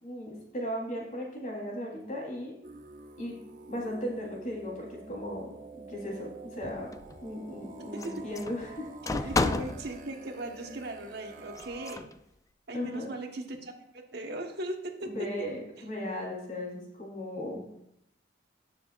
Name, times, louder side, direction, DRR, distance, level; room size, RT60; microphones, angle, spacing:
voice 1, 0.0-2.6 3.2-3.4 3.7-5.5 5.9-6.9 7.2-8.9 12.7-13.1 15.1-17.6, equal, 45° left, -3 dB, 3.7 m, -36 dB
sound 1, 2.6-12.0, right 3 dB, 45° right, 0.8 m, -48 dB
sound 2, 6.6-7.3 8.0-9.9 11.6-12.1, left 3 dB, 20° left, 0.4 m, -31 dB
voice 2, 9.1-12.1 12.7-15.1, right 1 dB, 65° right, 3 dB, 1.4 m, -38 dB
18.5 x 7.0 x 2.5 m, 0.78 s
head